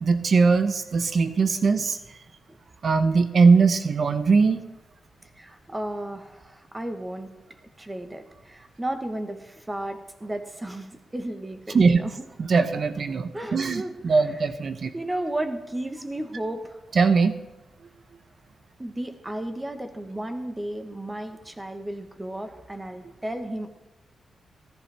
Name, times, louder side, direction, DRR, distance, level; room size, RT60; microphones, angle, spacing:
voice 1, 0.0-2.0 2.8-4.6 11.7-12.0 12.4-14.9 17.0-17.3, right 4 dB, 55° right, 10 dB, 0.9 m, -20 dB
voice 2, 5.3-7.3 7.8-12.3 13.1-14.4 14.9-16.8 18.8-23.7, right 1 dB, 15° right, 7 dB, 1.2 m, -34 dB
14.5 x 13.5 x 3.5 m, 1.0 s
cardioid pair, 100°, 0 cm